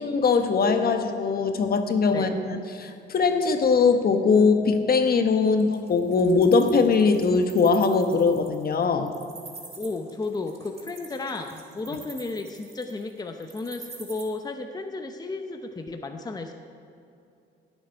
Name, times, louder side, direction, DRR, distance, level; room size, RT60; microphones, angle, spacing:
voice 1, 0.0-9.1 11.9-12.0, left 4 dB, 50° left, 7 dB, 1.1 m, -21 dB
Wild animals, 5.6-14.2, right 3 dB, 30° right, 2.3 m, -45 dB
voice 2, 9.8-16.5, left 3 dB, 20° left, 5 dB, 0.8 m, -33 dB
18.0 x 8.2 x 4.6 m, 2.6 s
cardioid pair, 90°, 20 cm